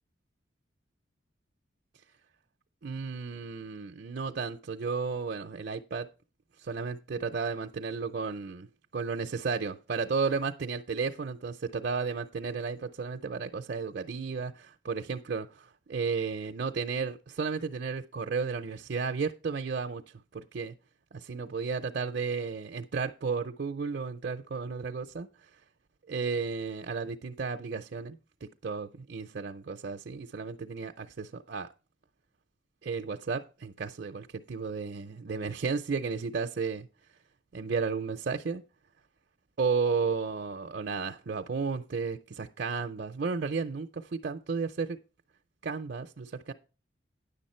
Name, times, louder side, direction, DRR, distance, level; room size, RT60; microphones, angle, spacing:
voice 1, 2.8-6.1 6.6-8.7 8.9-20.0 20.3-20.7 21.1-25.3 26.1-28.2 28.6-31.7 32.8-36.9 37.5-38.6 39.6-45.0 45.6-46.5, right 5 dB, 55° right, 0.5 m, -33 dB
10.0 x 6.9 x 4.3 m
head